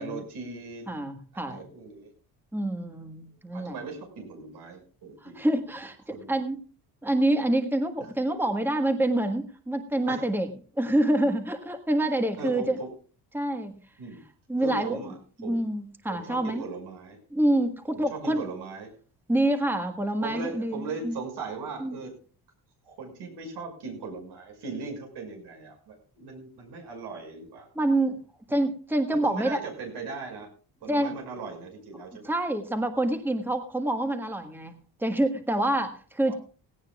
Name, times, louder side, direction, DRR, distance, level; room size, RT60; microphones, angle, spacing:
voice 1, 0.0-1.0 1.3-2.1 3.5-5.4 6.1-6.3 10.1-10.3 12.4-12.9 14.0-14.2 14.6-15.2 15.4-15.6 16.1-17.2 17.9-18.9 20.2-22.1 22.8-27.7 29.1-30.5 30.8-32.3 36.2-36.4, right 4 dB, 80° right, 3 dB, 6.1 m, -38 dB
voice 2, 0.9-1.6 2.5-3.8 5.2-6.6 7.0-10.5 10.7-12.8 13.3-13.7 14.5-15.0 15.4-16.6 17.3-18.4 19.3-21.1 21.8-22.0 27.7-28.2 28.5-29.6 30.9-31.1 32.2-34.7 35.0-36.3, right 1 dB, 5° right, 6 dB, 1.5 m, -27 dB
17.5 x 17.5 x 2.4 m, 0.39 s
cardioid pair, 140°, 39 cm